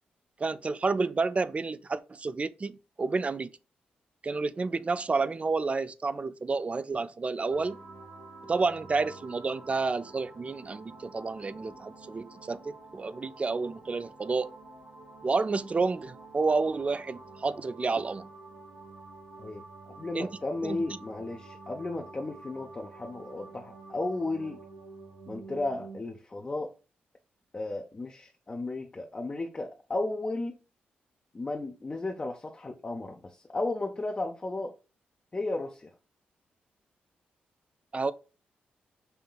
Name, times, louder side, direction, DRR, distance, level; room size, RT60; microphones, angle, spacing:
voice 1, 0.4-3.6 4.2-7.8 8.5-14.5 15.2-18.3 20.1-20.3 20.6-20.8 37.9-38.1, right 4 dB, 35° right, 0.3 m, -30 dB
sound 1, 7.5-26.0, right 3 dB, 65° right, 2.1 m, -49 dB
voice 2, 19.4-24.6 25.3-26.7 27.5-30.6 31.3-34.7 35.3-35.9, left 2 dB, 30° left, 0.6 m, -34 dB
5.5 x 2.8 x 2.3 m
supercardioid pair, 50°, 4 cm